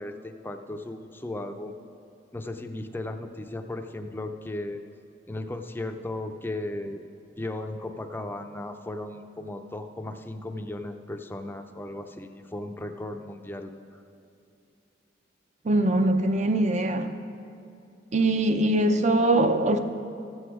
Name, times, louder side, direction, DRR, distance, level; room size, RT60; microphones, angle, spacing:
voice 1, 0.0-1.8 2.3-4.8 5.3-7.0 7.4-13.7, left 2 dB, 10° left, 6 dB, 0.5 m, -36 dB
voice 2, 15.6-17.1 18.1-19.8, right 1 dB, 40° right, 8 dB, 0.6 m, -22 dB
14.5 x 8.0 x 4.8 m, 2.6 s
head